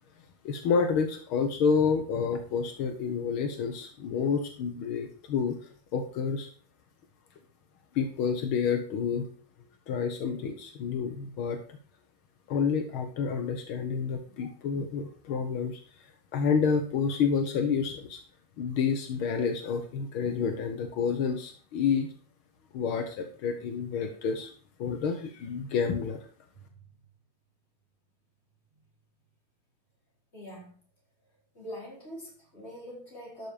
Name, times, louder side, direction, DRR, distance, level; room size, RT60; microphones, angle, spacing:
voice 1, 0.4-5.6 5.9-6.5 8.0-9.2 9.9-11.8 12.5-15.8 16.3-18.2 18.6-22.1 22.7-24.5 24.8-26.3, left 6 dB, 85° left, 5 dB, 2.1 m, -29 dB
voice 2, 26.5-26.9 30.3-30.8 31.5-33.5, equal, 30° left, -3 dB, 5.1 m, -44 dB
12.5 x 6.3 x 5.1 m, 0.43 s
omnidirectional pair, 2.2 m